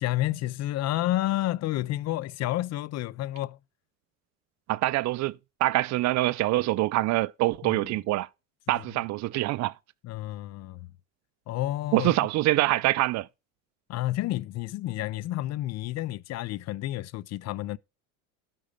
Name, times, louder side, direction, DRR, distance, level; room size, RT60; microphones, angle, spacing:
voice 1, 0.0-3.6 7.7-8.0 8.7-8.8 10.0-10.9 11.5-12.1 13.9-17.8, left 15 dB, 45° left, 0.5 m, -30 dB
voice 2, 4.7-8.3 8.7-9.7 11.9-13.3, right 18 dB, 45° right, 0.4 m, -25 dB
11.5 x 5.5 x 5.1 m
supercardioid pair, 100°, 39 cm